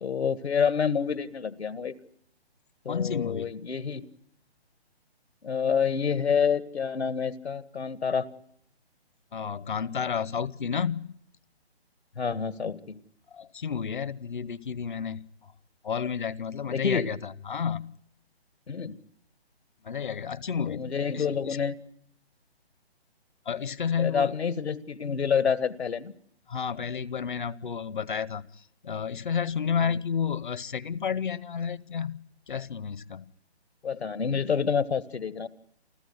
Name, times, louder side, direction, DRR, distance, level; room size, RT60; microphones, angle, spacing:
voice 1, 0.0-2.0 2.9-4.1 5.4-8.3 12.2-13.0 16.7-17.1 18.7-19.0 20.7-21.8 24.0-26.1 29.8-29.9 33.8-35.5, left 6 dB, 75° left, 1.8 m, -28 dB
voice 2, 2.9-3.5 9.3-11.2 13.3-15.2 15.8-18.0 19.8-21.6 23.5-24.4 26.5-32.2 32.5-33.3, left 7 dB, 50° left, 0.9 m, -31 dB
28.5 x 14.0 x 9.6 m
hypercardioid pair, 170°, 32 cm